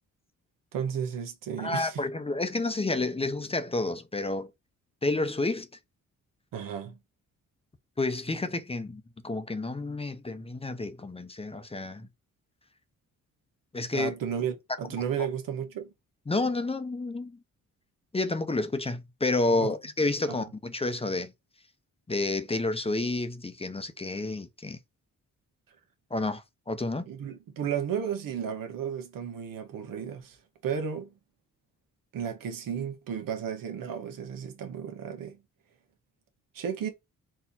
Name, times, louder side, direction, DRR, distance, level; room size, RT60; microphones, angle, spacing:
voice 1, 0.7-2.0 6.5-7.0 13.9-15.9 19.6-19.7 20.3-20.4 27.1-30.4 30.6-31.1 32.1-35.4 36.5-36.9, right 8 dB, 85° right, 1.2 m, -33 dB
voice 2, 1.6-4.5 5.0-5.7 8.0-12.1 13.7-14.1 16.3-17.4 18.1-21.3 22.1-24.8 26.1-27.1, left 2 dB, 20° left, 0.7 m, -30 dB
4.4 x 2.8 x 4.1 m
cardioid pair, 85°, 32 cm